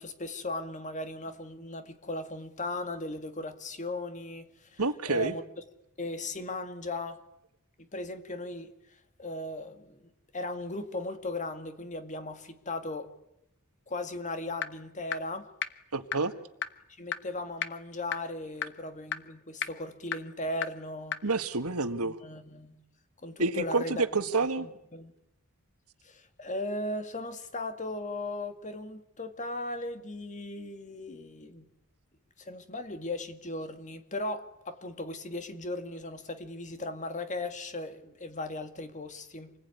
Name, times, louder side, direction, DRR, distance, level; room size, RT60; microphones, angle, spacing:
voice 1, 0.0-4.8 5.1-5.4 6.0-7.2 7.9-8.7 9.2-13.1 13.9-15.5 17.0-21.2 22.0-22.8 23.2-24.1 24.6-25.1 26.0-31.7 32.4-39.5, left 2 dB, 35° left, 2.2 m, -37 dB
voice 2, 4.8-5.3 15.9-16.3 21.2-22.2 23.4-24.7, right 3 dB, 80° right, 1.7 m, -28 dB
sound 1, 14.6-14.7 15.1-15.2 15.6-15.7 16.1-16.2 16.6-16.7 17.1-17.2 17.6-17.7 18.1-18.2 18.6-18.7 19.1-19.2 19.6-19.7 20.1-20.2 20.6-20.7 21.1-21.2, left 8 dB, 55° left, 1.3 m, -30 dB
27.5 x 20.5 x 9.7 m
head